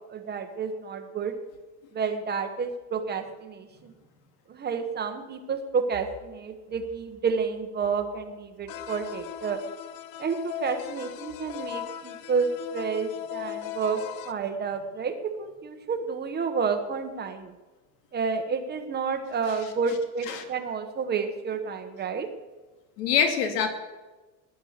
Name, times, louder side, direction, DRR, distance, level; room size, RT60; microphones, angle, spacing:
voice 1, 0.0-1.3 1.9-3.7 4.5-9.6 10.2-14.0 14.3-17.5 18.1-22.3, right 5 dB, 20° right, 7 dB, 1.1 m, -30 dB
sound 1, 8.7-14.3, left 12 dB, 45° left, 0.8 m, -38 dB
voice 2, 23.0-23.7, left 7 dB, 80° left, 5 dB, 2.8 m, -25 dB
18.0 x 10.0 x 7.3 m, 1.2 s
cardioid pair, 170°, 47 cm